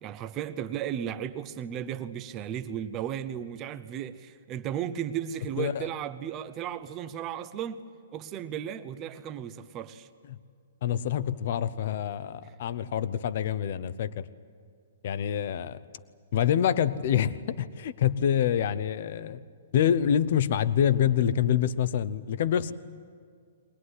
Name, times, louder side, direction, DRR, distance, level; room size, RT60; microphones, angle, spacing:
voice 1, 0.0-7.8 8.1-10.1 12.4-12.5, right 9 dB, 15° right, 0.7 m, -35 dB
voice 2, 5.6-5.9 10.3-10.4 10.8-14.3 15.0-15.8 16.3-19.4 19.7-22.7, left 9 dB, 40° left, 0.7 m, -26 dB
22.5 x 20.0 x 9.8 m
hypercardioid pair, 180°, 0 cm